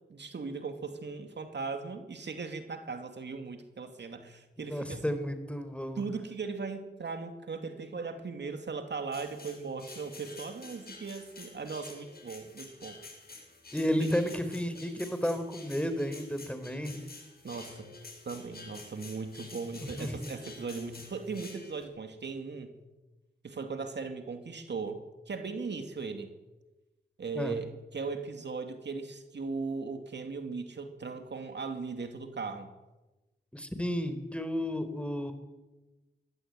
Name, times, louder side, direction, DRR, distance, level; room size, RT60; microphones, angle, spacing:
voice 1, 0.1-5.0 6.0-13.0 14.0-14.1 17.4-17.9 18.2-22.7 23.4-26.3 27.2-32.7, right 4 dB, 70° right, 6 dB, 2.6 m, -38 dB
voice 2, 4.6-6.0 13.7-17.0 19.8-20.3 27.3-27.5 33.5-35.3, equal, 5° left, 10 dB, 4.1 m, -32 dB
sound 1, 9.1-21.8, left 3 dB, 55° left, 7.7 m, -49 dB
22.0 x 16.5 x 9.1 m, 1.1 s
cardioid pair, 45°, 19 cm